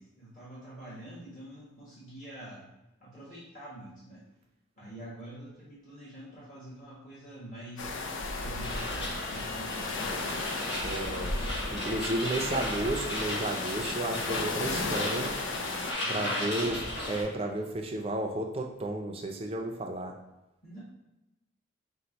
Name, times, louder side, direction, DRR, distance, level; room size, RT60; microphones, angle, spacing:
voice 1, 0.0-4.2 4.8-8.0 8.4-10.4 12.2-12.3 16.0-16.9 20.6-20.8, right 1 dB, 40° left, -8 dB, 1.3 m, -46 dB
sound 1, 7.8-15.9, left 3 dB, 80° left, 0.5 m, -34 dB
sound 2, 8.6-17.2, left 1 dB, 60° left, 1.3 m, -36 dB
voice 2, 10.8-11.4 11.7-15.4 16.1-16.8 17.1-20.2, right 1 dB, 30° right, 2 dB, 0.5 m, -33 dB
4.4 x 2.2 x 4.0 m, 0.98 s
head